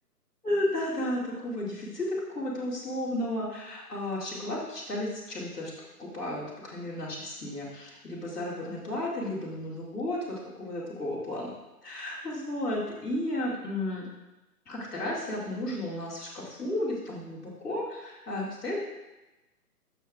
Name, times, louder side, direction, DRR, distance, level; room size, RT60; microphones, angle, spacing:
voice 1, 0.4-5.7 6.0-11.5 11.8-14.1 14.7-18.8, left 1 dB, ahead, -14 dB, 0.7 m, -33 dB
6.7 x 6.2 x 3.3 m, 1.0 s
figure-of-eight pair, 140°, 47 cm